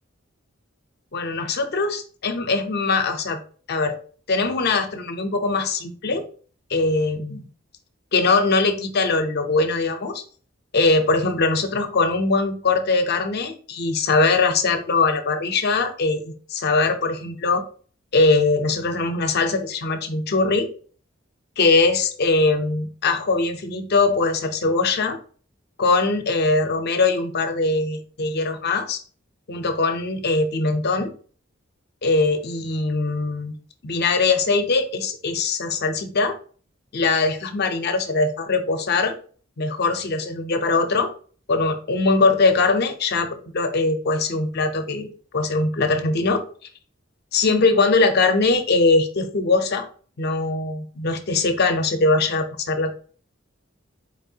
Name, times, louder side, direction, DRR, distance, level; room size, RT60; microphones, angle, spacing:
voice 1, 1.1-3.4 3.7-4.0 4.3-6.2 6.7-7.4 8.1-10.2 10.7-17.6 18.1-20.7 21.6-25.2 25.8-29.0 29.5-31.1 32.0-33.5 33.8-36.4 36.9-39.1 39.6-41.1 41.5-45.1 45.3-46.4 47.3-49.9 50.2-52.9, left 3 dB, 55° left, 7 dB, 0.6 m, -21 dB
4.2 x 3.1 x 2.7 m, 0.42 s
head